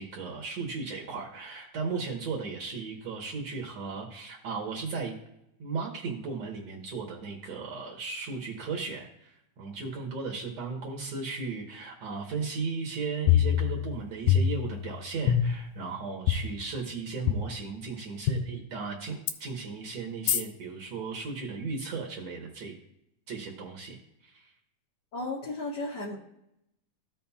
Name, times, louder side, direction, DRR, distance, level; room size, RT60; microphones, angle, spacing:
voice 1, 0.0-5.2 5.6-22.7 23.3-24.5, right 4 dB, 65° right, 0 dB, 2.1 m, -36 dB
sound 1, 13.3-14.0 14.3-14.9 15.3-15.8 16.3-16.4 17.3-17.4 18.3-18.4 19.3-19.4 20.3-20.4, left 10 dB, 75° left, 1.8 m, -24 dB
voice 2, 25.1-26.1, left 2 dB, 50° left, -6 dB, 1.3 m, -34 dB
15.0 x 5.6 x 2.3 m, 0.81 s
omnidirectional pair, 3.5 m